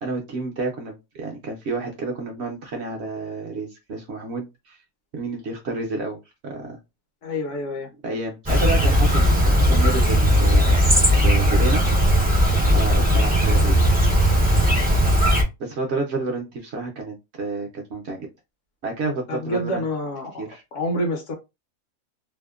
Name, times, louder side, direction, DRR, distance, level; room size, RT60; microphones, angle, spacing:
voice 1, 0.0-4.8 5.1-6.8 8.0-10.8 11.2-11.8 12.7-13.8 15.6-18.3 18.8-19.9 20.4-20.6, right 3 dB, 60° right, 0.7 m, -30 dB
voice 2, 7.2-7.9 19.3-20.4 20.7-21.4, left 1 dB, 65° left, 1.0 m, -27 dB
Chirp tweet, 8.5-15.4, equal, 15° right, 0.3 m, -17 dB
2.7 x 2.1 x 2.3 m
omnidirectional pair, 1.5 m